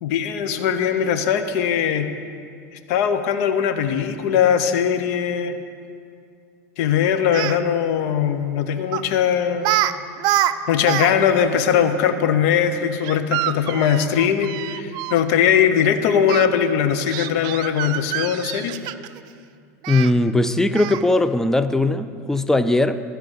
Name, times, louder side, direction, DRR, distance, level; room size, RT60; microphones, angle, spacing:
voice 1, 0.0-2.1 2.9-5.5 6.8-9.7 10.7-18.7, left 8 dB, 65° left, 9 dB, 0.8 m, -20 dB
Speech, 7.2-7.6 8.9-9.1 9.6-9.9 10.2-11.1 11.4-11.5 13.0-15.2 16.3-16.5 17.1-19.2 19.8-20.1 20.7-21.1, right 14 dB, 55° right, 0.4 m, -25 dB
voice 2, 19.9-23.0, left 2 dB, 5° left, 12 dB, 0.4 m, -19 dB
13.0 x 4.8 x 8.2 m, 2.3 s
hypercardioid pair, 105°, 9 cm